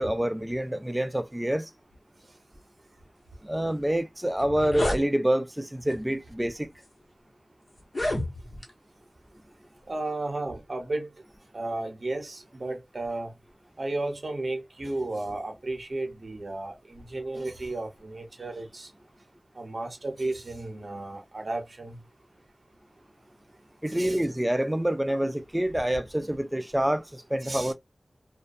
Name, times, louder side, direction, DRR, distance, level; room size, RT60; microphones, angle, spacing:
voice 1, 0.0-1.7 3.4-6.7 23.8-27.7, right 1 dB, 10° right, 0.3 m, -27 dB
sound 1, 3.9-4.0 4.3-5.0 5.9-6.1 6.8-6.9 7.8-8.7, left 1 dB, 50° left, 1.0 m, -30 dB
voice 2, 9.9-11.1 11.5-13.3 13.8-18.9 19.5-22.0 23.9-24.2 27.4-27.7, right 2 dB, 60° right, 0.9 m, -33 dB
2.3 x 2.1 x 2.5 m
wide cardioid pair, 85°, 0 cm